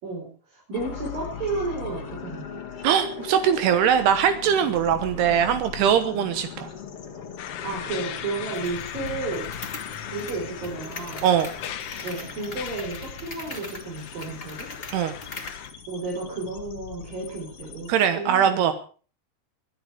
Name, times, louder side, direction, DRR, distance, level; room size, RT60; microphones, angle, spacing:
voice 1, 0.0-2.6 7.6-9.5 10.1-11.3 12.0-14.7 15.9-18.7, right 3 dB, 55° right, -3 dB, 6.5 m, -32 dB
sound 1, 0.7-17.9, left 6 dB, 45° left, 2.2 m, -40 dB
voice 2, 2.8-6.7 11.2-11.5 14.9-15.1 17.9-18.7, right 8 dB, 80° right, 9 dB, 3.2 m, -21 dB
sound 2, 7.4-15.7, left 10 dB, 80° left, 3.3 m, -39 dB
sound 3, 8.6-15.7, left 2 dB, 20° left, 1.9 m, -42 dB
23.0 x 9.6 x 5.0 m, 0.40 s
omnidirectional pair, 4.7 m